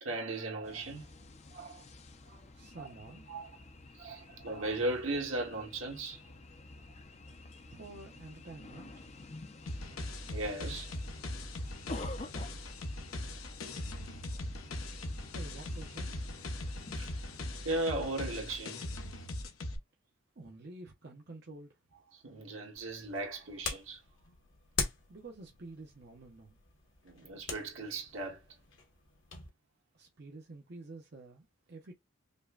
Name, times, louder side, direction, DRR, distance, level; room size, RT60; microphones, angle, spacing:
voice 1, 0.0-1.0 1.5-1.8 2.3-2.4 2.8-2.9 3.3-3.5 3.9-6.2 10.3-11.0 17.0-17.1 17.6-18.8 22.2-24.0 27.0-28.4, right 2 dB, 75° right, 1.4 m, -37 dB
sound 1, 0.6-17.8, left 2 dB, 30° left, 0.5 m, -50 dB
voice 2, 2.5-3.3 7.7-9.1 15.3-16.3 20.4-21.8 25.1-26.6 29.9-31.9, right 2 dB, 50° right, 0.7 m, -49 dB
sound 2, 9.7-19.8, left 1 dB, 90° left, 1.0 m, -40 dB
sound 3, 22.7-29.5, left 5 dB, 70° left, 1.2 m, -42 dB
5.2 x 2.2 x 2.4 m
head